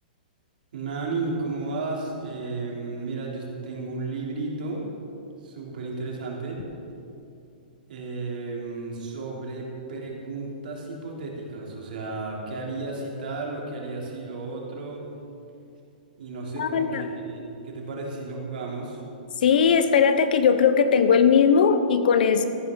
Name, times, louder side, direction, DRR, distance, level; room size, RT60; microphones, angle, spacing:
voice 1, 0.7-4.8 5.4-6.6 7.9-15.0 16.2-19.0, right 3 dB, 70° right, -2 dB, 3.4 m, -33 dB
voice 2, 16.5-17.1 19.4-22.4, left 6 dB, 65° left, 10 dB, 0.9 m, -19 dB
14.0 x 12.5 x 4.0 m, 2.7 s
hypercardioid pair, 160°, 5 cm